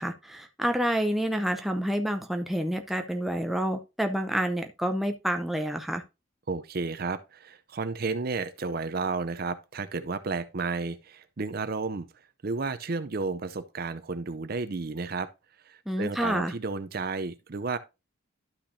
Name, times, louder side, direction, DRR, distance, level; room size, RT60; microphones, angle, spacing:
voice 1, 0.0-6.0 15.9-16.5, equal, ahead, 0.6 m, -28 dB
voice 2, 6.5-12.1 12.4-15.3 15.7-17.8, right 4 dB, 45° right, 0.5 m, -32 dB
12.0 x 5.8 x 2.6 m
head